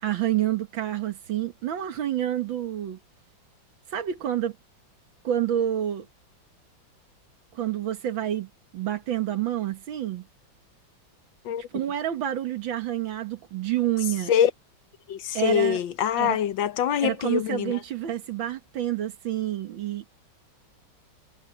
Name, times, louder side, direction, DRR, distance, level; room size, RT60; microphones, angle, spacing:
voice 1, 0.0-3.0 3.9-4.6 5.2-6.1 7.5-10.3 11.7-14.3 15.3-15.8 16.2-16.4 17.0-20.1, right 12 dB, 85° right, 2.1 m, -28 dB
voice 2, 15.1-17.8, left 9 dB, 80° left, 1.7 m, -24 dB
omnidirectional pair, 2.1 m